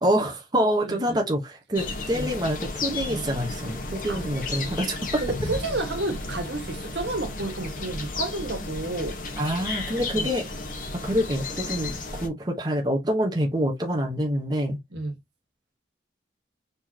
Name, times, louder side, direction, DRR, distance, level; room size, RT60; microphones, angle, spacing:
voice 1, 0.0-5.2 9.4-10.4 11.0-14.8, equal, 25° right, 1.2 m, -26 dB
voice 2, 0.8-1.2 2.1-2.3 3.1-3.2 4.1-4.2 4.6-4.8 5.2-9.2 10.1-10.3 12.2-12.3 14.9-15.1, right 2 dB, 80° right, 1.8 m, -31 dB
sound 1, 1.7-12.3, left 2 dB, 45° left, 1.4 m, -33 dB
4.4 x 3.9 x 3.0 m
head